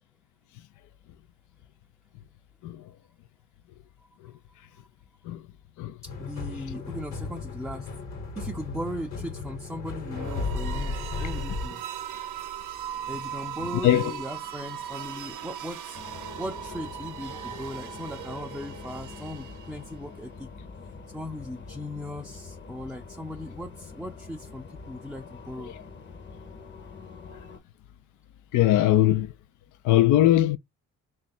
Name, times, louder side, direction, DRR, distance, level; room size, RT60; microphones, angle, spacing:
sound 1, 6.0-11.7, left 4 dB, 65° left, 1.2 m, -34 dB
voice 1, 6.0-7.9 8.4-11.8 13.1-16.0 16.4-20.5 21.1-25.7, left 1 dB, ahead, 0.4 m, -38 dB
sound 2, 10.1-20.0, right 10 dB, 90° right, 0.6 m, -38 dB
sound 3, 15.9-27.6, left 4 dB, 40° left, 0.8 m, -44 dB
voice 2, 28.5-29.3 29.8-30.6, left 13 dB, 80° left, 0.5 m, -21 dB
3.1 x 2.4 x 4.2 m
cardioid pair, 90°, 30 cm